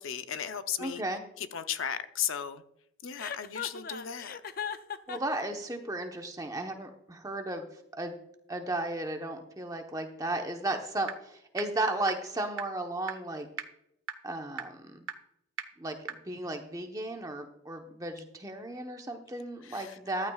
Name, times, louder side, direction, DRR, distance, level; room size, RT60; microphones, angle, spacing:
voice 1, 0.0-1.0 1.4-2.6 3.0-4.4 19.6-20.0, left 8 dB, 80° left, 10 dB, 0.7 m, -35 dB
voice 2, 0.8-1.2 5.1-8.2 8.5-13.5 14.2-15.1 15.8-20.3, right 2 dB, 15° right, 4 dB, 1.0 m, -35 dB
Chuckle chortle, 3.2-5.4, left 7 dB, 45° left, 0.5 m, -38 dB
sound 1, 11.1-11.2 11.6-11.7 12.1-12.2 12.6-12.7 13.1-13.2 13.6-13.7 14.1-14.2 14.6-14.7 15.1-15.2 15.6-15.7 16.1-16.2, right 7 dB, 85° right, 0.9 m, -35 dB
14.0 x 12.5 x 2.4 m, 0.78 s
head